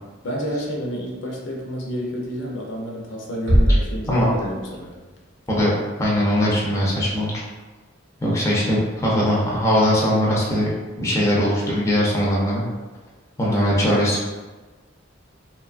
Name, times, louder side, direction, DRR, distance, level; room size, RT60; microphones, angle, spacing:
voice 1, 0.2-4.9 8.6-8.8 13.5-14.2, equal, 70° left, -1 dB, 0.5 m, -30 dB
sound 1, 3.5-5.1, equal, 70° right, 0.7 m, -20 dB
voice 2, 4.1-4.5 5.5-5.7 6.0-7.3 8.2-10.7 11.0-12.6 13.4-14.2, equal, 15° left, -5 dB, 0.5 m, -20 dB
2.9 x 2.2 x 2.4 m, 1.3 s
head